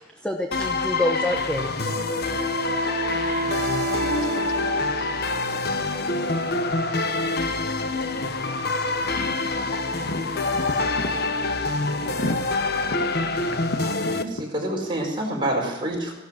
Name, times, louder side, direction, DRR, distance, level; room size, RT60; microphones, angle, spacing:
voice 1, 0.2-2.2 2.7-3.0, left 1 dB, 5° left, 2 dB, 1.0 m, -28 dB
sound 1, 0.5-14.2, left 3 dB, 55° left, 1.1 m, -26 dB
Wind instrument woodwind instrument, 1.9-5.5, right 2 dB, 45° right, 0.7 m, -30 dB
voice 2, 9.0-9.7 10.0-10.2 10.5-11.2 12.1-12.4 12.9-13.1 14.0-14.2, left 1 dB, 85° left, 6 dB, 1.5 m, -32 dB
voice 3, 14.1-16.1, right 1 dB, 25° right, -2 dB, 4.8 m, -27 dB
16.0 x 12.0 x 6.6 m, 1.0 s
head